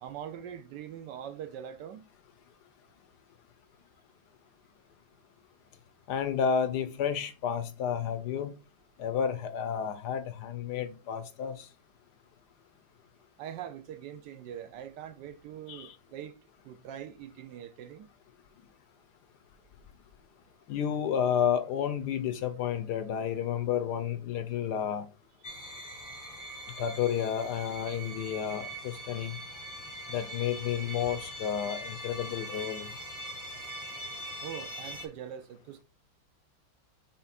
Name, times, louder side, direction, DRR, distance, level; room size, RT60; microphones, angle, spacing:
voice 1, 0.0-2.1 13.4-16.4 16.6-18.1 34.4-35.8, right 9 dB, 75° right, 1.1 m, -42 dB
voice 2, 6.1-8.5 9.0-11.7 15.7-16.0 20.7-25.0 26.8-29.4 30.1-32.9, left 8 dB, 70° left, 1.0 m, -31 dB
sound 1, 25.4-35.1, right 1 dB, 15° left, 0.7 m, -42 dB
5.7 x 4.0 x 4.1 m
omnidirectional pair, 2.2 m